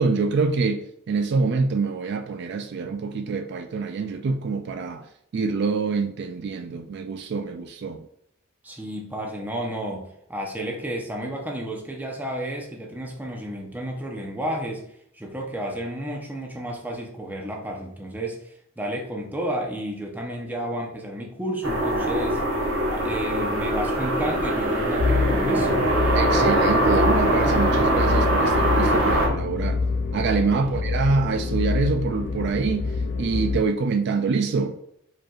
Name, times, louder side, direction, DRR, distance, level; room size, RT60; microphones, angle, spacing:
voice 1, 0.0-5.1 5.3-8.0 26.1-29.8 30.1-34.7, right 4 dB, 55° right, 0.3 m, -25 dB
voice 2, 8.6-14.8 15.1-22.4 22.9-25.9 30.4-30.8, right 1 dB, 10° right, 0.8 m, -32 dB
sound 1, 21.6-29.3, right 1 dB, 85° right, 1.4 m, -22 dB
sound 2, 25.0-33.6, left 4 dB, 55° left, 0.3 m, -26 dB
4.9 x 4.4 x 2.4 m
head